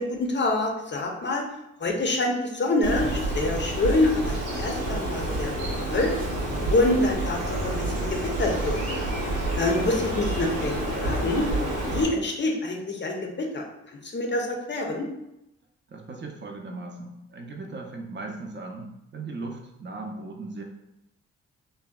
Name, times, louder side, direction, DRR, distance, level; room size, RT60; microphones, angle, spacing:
voice 1, 0.0-1.4 1.8-5.5 5.9-6.1 6.7-9.1 9.5-10.7 11.0-11.4 11.9-13.7 14.0-15.1, left 2 dB, 35° left, 1 dB, 0.6 m, -26 dB
Bird, 2.8-12.0, right 1 dB, 80° right, 0.7 m, -28 dB
voice 2, 15.9-20.6, right 3 dB, 35° right, 2 dB, 0.6 m, -38 dB
2.6 x 2.1 x 2.2 m, 0.86 s
hypercardioid pair, 45°, 33 cm